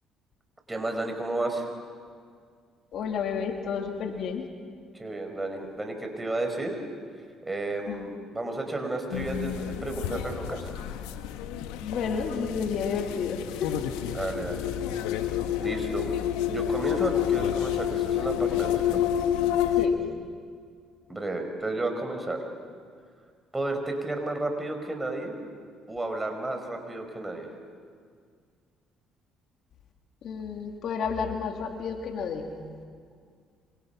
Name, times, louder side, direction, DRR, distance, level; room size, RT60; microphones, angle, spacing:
voice 1, 0.7-1.7 4.9-6.8 7.4-10.8 14.1-14.7 15.6-16.1 16.4-19.2 21.1-22.4 23.5-25.4 25.9-27.5, right 2 dB, 15° right, 4 dB, 5.1 m, -32 dB
voice 2, 2.9-4.5 7.9-8.1 11.8-13.8 19.8-20.1 30.2-32.5, left 6 dB, 65° left, 4 dB, 2.6 m, -31 dB
sound 1, 9.1-19.9, left 11 dB, 85° left, 1.4 m, -29 dB
26.5 x 26.0 x 5.9 m, 2.1 s
supercardioid pair, 70°, 0 cm